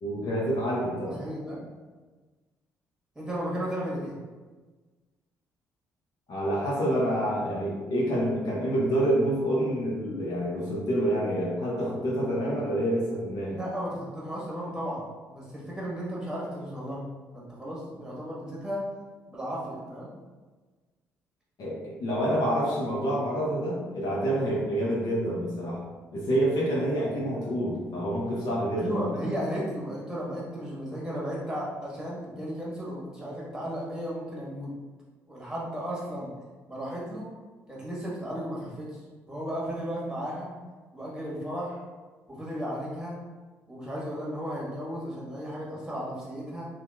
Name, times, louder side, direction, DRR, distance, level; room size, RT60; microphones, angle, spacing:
voice 1, 0.0-1.2 6.3-13.6 21.6-25.8 26.1-28.9, right 1 dB, 60° left, -6 dB, 0.7 m, -27 dB
voice 2, 1.2-1.6 3.1-4.2 13.5-17.0 17.3-18.9 19.3-20.1 28.8-34.7 35.3-36.3 36.7-37.3 37.7-40.5 40.9-41.8 42.3-43.2 43.7-46.7, equal, 10° right, -6 dB, 1.1 m, -34 dB
2.8 x 2.3 x 2.3 m, 1.3 s
hypercardioid pair, 45°, 8 cm